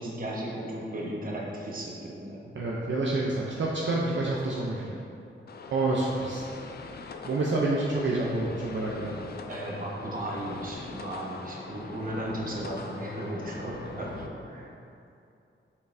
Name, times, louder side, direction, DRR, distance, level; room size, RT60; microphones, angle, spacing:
voice 1, 0.0-2.5 9.5-14.7, right 1 dB, 40° right, -4 dB, 1.0 m, -35 dB
voice 2, 2.5-4.9 5.7-6.4 7.2-9.2 13.6-13.8, right 2 dB, 65° right, -4 dB, 0.6 m, -28 dB
sound 1, 5.5-14.3, left 4 dB, 50° left, 0.4 m, -42 dB
6.5 x 5.4 x 2.6 m, 2.6 s
wide cardioid pair, 135°, 21 cm